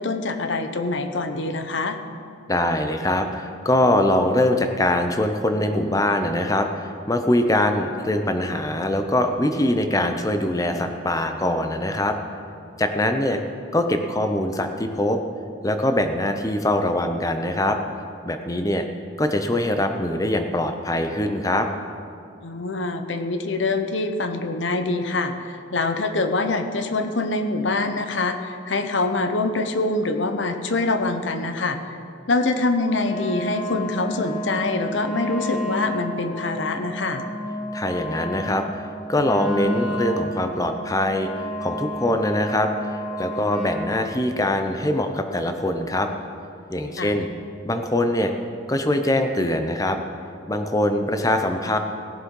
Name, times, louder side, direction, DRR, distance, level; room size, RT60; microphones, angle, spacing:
voice 1, 0.0-2.0 22.4-32.0 32.3-37.2 47.0-47.1, left 3 dB, 75° left, 7 dB, 0.9 m, -25 dB
voice 2, 2.5-12.2 12.8-13.4 13.7-15.2 15.6-17.8 18.2-18.9 19.2-21.7 37.7-38.8 39.1-41.3 41.6-46.1 46.7-47.3 47.6-48.3 48.7-50.0 50.5-51.8, left 1 dB, 20° left, 6 dB, 0.7 m, -23 dB
Wind instrument woodwind instrument, 32.9-43.9, equal, 5° right, 2.4 m, -31 dB
17.5 x 7.7 x 5.4 m, 2.4 s
head